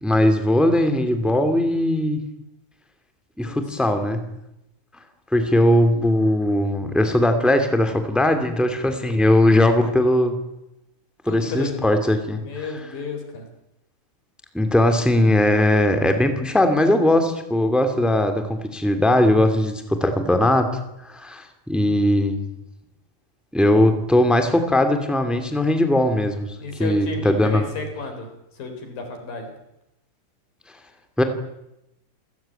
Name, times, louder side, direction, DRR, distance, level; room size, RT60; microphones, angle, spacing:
voice 1, 0.0-2.2 3.4-4.3 5.3-10.4 11.2-12.4 14.5-20.7 21.0-22.4 23.5-27.6 31.2-31.3, left 1 dB, ahead, 7 dB, 0.4 m, -19 dB
voice 2, 11.3-11.8 12.4-13.5 26.6-28.3 28.5-29.5, left 3 dB, 50° left, 5 dB, 5.5 m, -32 dB
28.0 x 18.0 x 9.0 m, 0.87 s
omnidirectional pair, 5.3 m